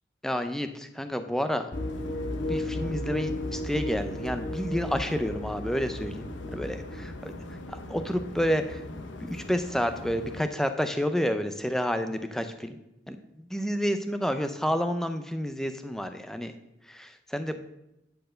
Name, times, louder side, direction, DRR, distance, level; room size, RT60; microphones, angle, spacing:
voice 1, 0.2-1.7 2.5-7.3 7.7-8.8 9.2-12.8 13.1-16.5 16.9-17.6, equal, ahead, 8 dB, 0.5 m, -30 dB
sound 1, 1.7-10.4, left 2 dB, 75° left, 0.9 m, -41 dB
sound 2, 1.7-7.0, left 1 dB, 35° left, 2.1 m, -34 dB
9.8 x 4.6 x 6.3 m, 0.87 s
head